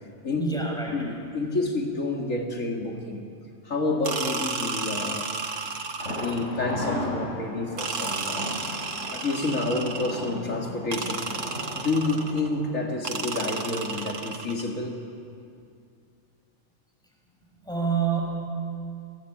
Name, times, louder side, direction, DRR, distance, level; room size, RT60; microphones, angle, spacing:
voice 1, 0.4-1.0 17.7-18.2, right 6 dB, 5° left, -1 dB, 6.4 m, -26 dB
voice 2, 0.9-3.2 3.6-5.3 6.1-8.6 9.1-11.3 11.8-14.9, left 2 dB, 90° left, 1 dB, 2.8 m, -29 dB
sound 1, 4.0-6.6 7.8-10.4 10.9-12.5 13.0-14.7, right 4 dB, 75° right, 1.9 m, -33 dB
Thunder, 6.0-13.8 14.1-14.2 14.6-14.7, left 1 dB, 70° left, 5.7 m, -36 dB
30.0 x 20.5 x 8.7 m, 2.4 s
omnidirectional pair, 1.3 m